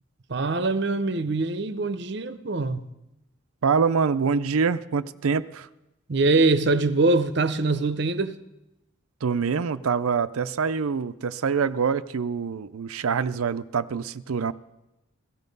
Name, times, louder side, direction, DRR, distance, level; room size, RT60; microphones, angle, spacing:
voice 1, 0.3-2.9 6.1-8.4, right 3 dB, 55° right, 0.7 m, -23 dB
voice 2, 3.6-5.7 9.2-14.5, right 5 dB, 90° right, 0.5 m, -25 dB
17.0 x 14.5 x 5.3 m
head